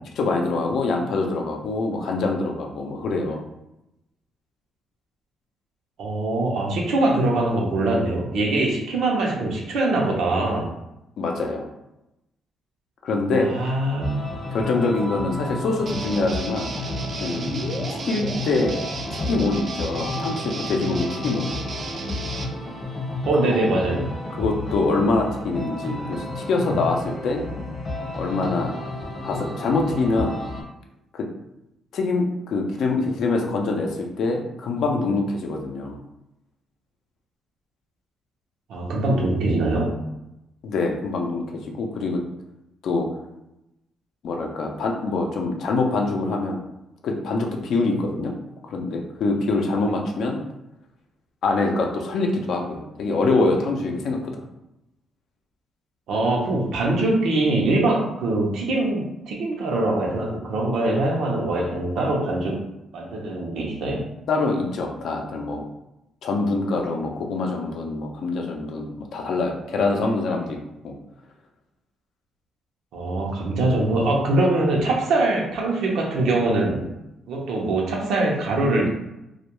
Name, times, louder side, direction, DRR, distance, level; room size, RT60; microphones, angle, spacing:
voice 1, 0.2-3.4 11.2-11.6 13.0-13.5 14.5-16.7 17.2-17.5 17.9-18.7 19.1-21.5 24.3-27.4 28.2-28.7 29.2-30.4 31.1-31.3 31.9-36.0 40.6-42.2 42.8-43.1 44.2-46.6 47.0-48.3 48.7-50.4 51.4-54.2 64.3-65.6 66.2-70.6 70.8-70.9, left 3 dB, 70° left, 2 dB, 0.5 m, -24 dB
voice 2, 6.0-10.7 13.4-14.4 23.3-24.1 38.7-39.9 56.1-62.6 62.9-64.0 72.9-76.8 77.3-78.9, right 2 dB, 80° right, -1 dB, 0.6 m, -23 dB
sound 1, 14.0-30.6, left 2 dB, 40° left, 0.9 m, -31 dB
Guitar, 15.8-22.5, right 4 dB, 50° right, 0.3 m, -34 dB
2.3 x 2.2 x 2.9 m, 0.89 s
cardioid pair, 90°, 0 cm